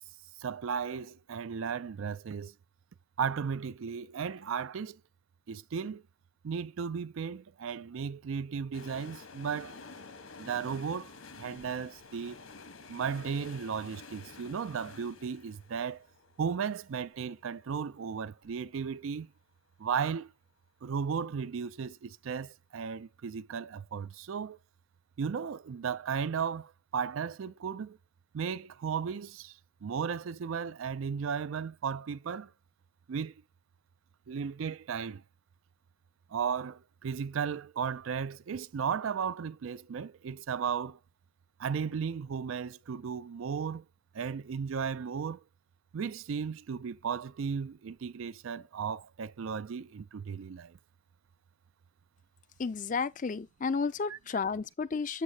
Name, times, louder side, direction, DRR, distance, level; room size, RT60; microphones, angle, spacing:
voice 1, 0.4-2.5 3.2-5.0 5.5-6.0 6.4-9.8 10.4-11.1 11.4-12.4 12.9-16.0 16.4-19.3 19.8-20.3 20.8-24.6 25.2-28.0 28.3-32.5 33.1-33.4 34.3-35.2 36.3-41.0 41.6-43.8 44.1-45.4 45.9-50.8, right 6 dB, 70° right, 0.4 m, -35 dB
sound 1, 8.7-18.5 18.8-18.9, left 4 dB, 80° left, 1.3 m, -50 dB
voice 2, 52.6-55.2, left 5 dB, 35° left, 0.4 m, -32 dB
8.0 x 7.3 x 2.8 m
head